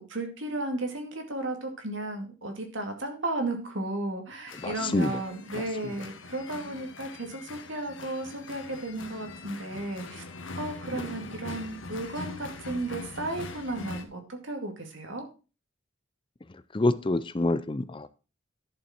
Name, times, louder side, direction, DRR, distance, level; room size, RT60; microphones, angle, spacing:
voice 1, 0.0-10.2 10.6-15.2, right 2 dB, 75° right, 4 dB, 2.3 m, -34 dB
sound 1, 4.5-14.0, left 3 dB, 75° left, 1.3 m, -42 dB
voice 2, 4.6-5.2 5.5-5.9 10.9-11.1 16.7-18.1, left 2 dB, 25° left, 14 dB, 0.5 m, -27 dB
11.0 x 7.2 x 4.3 m, 0.33 s
head